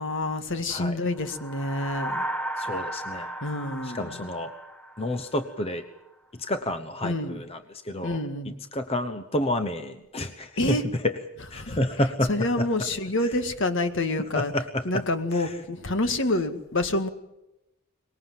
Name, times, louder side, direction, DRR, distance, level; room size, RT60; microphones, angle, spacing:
voice 1, 0.0-2.3 3.4-4.3 7.0-7.4 8.0-8.5 10.6-10.9 11.6-11.8 12.3-14.5 14.9-17.1, left 2 dB, 60° left, 1.9 m, -27 dB
sound 1, 1.1-5.7, right 1 dB, 5° left, 1.5 m, -35 dB
voice 2, 2.6-3.4 3.8-4.5 5.0-5.9 6.3-8.2 8.7-11.2 11.5-12.7 14.3-15.0 15.3-15.5, left 1 dB, 25° left, 1.0 m, -29 dB
24.0 x 20.5 x 7.6 m
head